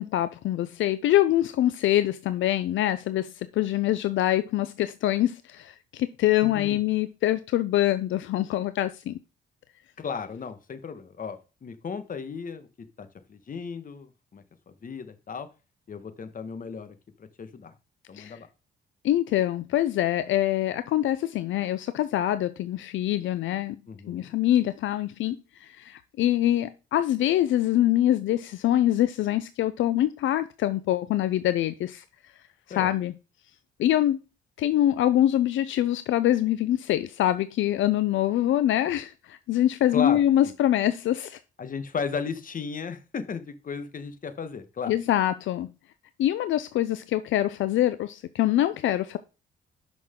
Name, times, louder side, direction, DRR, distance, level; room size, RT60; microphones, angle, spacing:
voice 1, 0.0-9.1 18.2-18.4 19.0-23.8 24.1-32.0 32.7-33.1 33.8-34.2 34.6-41.4 44.9-45.7 46.2-49.2, left 13 dB, 75° left, 0.6 m, -24 dB
voice 2, 6.4-6.8 10.0-12.7 13.0-15.5 15.9-17.0 17.4-17.7 18.1-18.5 23.9-24.3 32.7-32.9 39.9-40.2 41.6-45.0, left 5 dB, 45° left, 1.5 m, -35 dB
11.5 x 6.1 x 3.8 m
cardioid pair, 90°, 20 cm